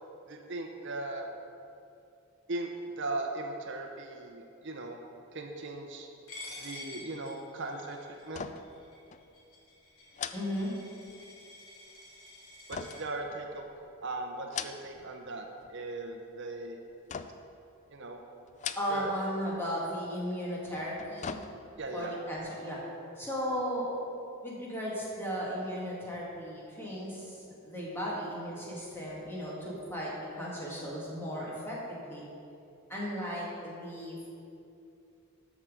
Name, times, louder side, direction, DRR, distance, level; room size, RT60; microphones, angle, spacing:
voice 1, 0.3-1.3 2.5-2.7 3.0-5.0 5.3-6.1 6.6-8.0 8.2-8.5 12.7-13.7 14.0-16.8 17.9-18.2 18.9-19.1 21.8-22.1, right 2 dB, 55° right, 3 dB, 0.8 m, -38 dB
Coin (dropping), 6.3-13.0, left 2 dB, 80° left, 2.6 m, -49 dB
sound 1, 8.3-8.8 9.1-9.3 10.1-11.2 12.7-13.8 14.4-15.1 15.4-16.0 17.1-17.6 18.5-19.2 19.5-19.7 20.8-21.9 22.3-22.4, left 6 dB, 35° left, 0.3 m, -41 dB
voice 2, 10.3-10.7 18.8-21.4 21.9-22.8 23.2-23.9 24.4-32.2 32.9-34.2, equal, 10° left, -6 dB, 2.1 m, -36 dB
12.5 x 6.1 x 5.0 m, 2.7 s
head